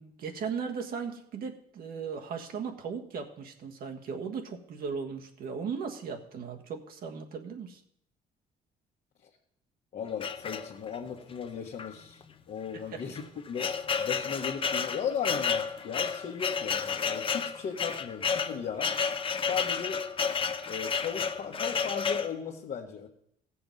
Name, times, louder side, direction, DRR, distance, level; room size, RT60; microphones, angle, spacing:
voice 1, 0.0-7.8 12.7-13.3, right 6 dB, 60° right, 4 dB, 1.5 m, -37 dB
voice 2, 9.9-12.2 12.5-13.7 14.0-18.9 19.4-20.0 20.7-23.1, left 7 dB, 50° left, -1 dB, 1.3 m, -36 dB
sound 1, 10.2-11.1 11.8-11.9 12.2-12.3 13.0-22.3, left 6 dB, 30° left, 0.7 m, -31 dB
15.5 x 7.0 x 5.3 m, 0.74 s
cardioid pair, 110°, 17 cm